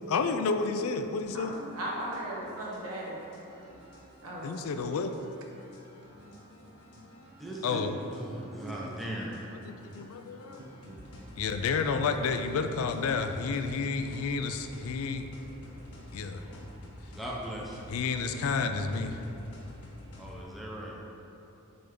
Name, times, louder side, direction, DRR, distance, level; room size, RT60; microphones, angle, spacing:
voice 1, 0.1-1.5 4.4-5.4 7.6-7.9 9.6-10.6 11.4-15.3 16.1-16.4 17.9-19.2, left 4 dB, 70° left, 7 dB, 0.4 m, -30 dB
sound 1, 1.2-20.4, left 1 dB, 90° left, 1.0 m, -50 dB
voice 2, 1.3-3.2 4.2-4.5, right 1 dB, 90° right, -4 dB, 1.3 m, -37 dB
voice 3, 6.1-7.0 7.4-7.5 7.8-8.0 8.3-9.1 10.6-11.0, right 2 dB, 70° right, 0 dB, 0.8 m, -48 dB
voice 4, 7.4-7.8 8.1-9.3 17.2-17.8 20.2-20.9, equal, ahead, -4 dB, 0.6 m, -38 dB
7.6 x 3.4 x 3.7 m, 2.9 s
head